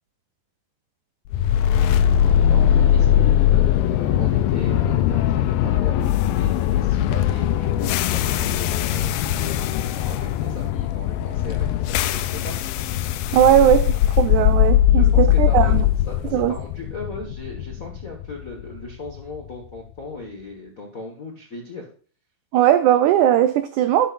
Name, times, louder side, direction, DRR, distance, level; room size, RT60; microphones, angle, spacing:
sound 1, 1.3-19.4, left 11 dB, 90° left, 2.4 m, -20 dB
voice 1, 2.0-6.0 6.2-12.5 14.9-21.9, left 2 dB, 60° left, 0 dB, 0.8 m, -37 dB
voice 2, 13.3-15.9 16.3-16.6 22.5-24.1, right 11 dB, 85° right, 10 dB, 1.7 m, -18 dB
12.0 x 11.0 x 2.5 m, 0.43 s
omnidirectional pair, 4.1 m